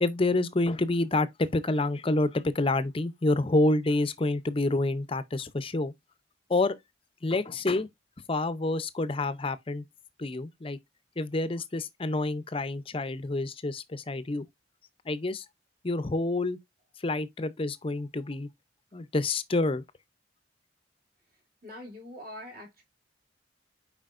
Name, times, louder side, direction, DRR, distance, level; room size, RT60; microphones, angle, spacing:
voice 1, 0.0-5.9 6.5-6.8 7.2-7.9 8.3-9.8 10.2-10.8 11.2-14.5 15.1-15.4 15.8-16.6 17.0-18.5 18.9-19.8, left 2 dB, 30° left, 0.5 m, -28 dB
voice 2, 21.6-22.8, left 1 dB, 55° right, 2.7 m, -43 dB
7.6 x 5.0 x 2.5 m
head